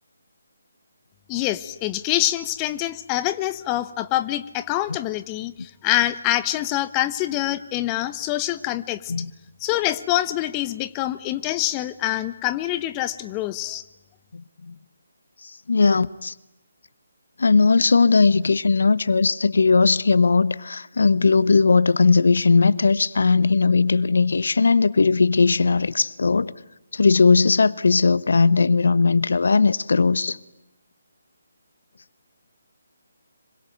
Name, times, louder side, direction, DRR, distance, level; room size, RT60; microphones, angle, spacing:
voice 1, 1.3-9.1 9.6-13.8, left 15 dB, 20° left, 1.0 m, -25 dB
voice 2, 15.7-16.3 17.4-26.5 26.9-30.4, left 4 dB, 65° left, 1.1 m, -18 dB
26.5 x 24.5 x 9.0 m
figure-of-eight pair, 150°, 0 cm